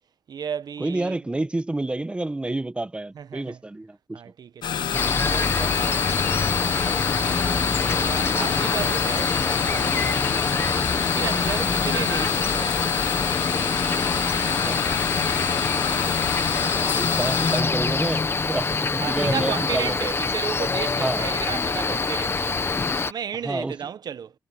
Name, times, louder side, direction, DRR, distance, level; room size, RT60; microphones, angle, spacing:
voice 1, 0.3-1.2 3.1-3.6 4.1-7.7 8.0-9.3 9.7-10.3 10.8-12.8 19.0-22.6 23.0-24.3, right 7 dB, 65° right, 0.9 m, -34 dB
voice 2, 0.8-4.2 11.0-11.1 14.4-14.8 16.9-20.0 21.0-21.2 23.4-23.8, right 2 dB, 15° right, 1.0 m, -29 dB
sound 1, 4.6-17.6, left 8 dB, 85° left, 1.3 m, -27 dB
Cricket, 4.9-23.1, left 4 dB, 35° left, 1.1 m, -25 dB
wide cardioid pair, 135°, 7 cm